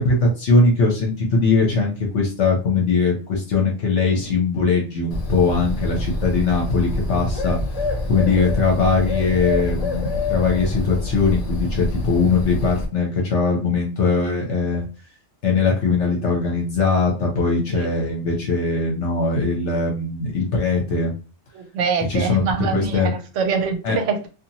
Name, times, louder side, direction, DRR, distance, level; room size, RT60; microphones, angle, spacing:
voice 1, 0.0-7.6 8.1-14.8 15.4-21.1 22.1-22.4 22.7-23.1 23.8-24.0, left 4 dB, 65° left, 1.0 m, -20 dB
Bird, 5.1-12.8, left 2 dB, 50° left, 0.4 m, -26 dB
voice 2, 21.5-24.3, right 5 dB, 70° right, 1.0 m, -24 dB
2.8 x 2.4 x 2.7 m
omnidirectional pair, 1.3 m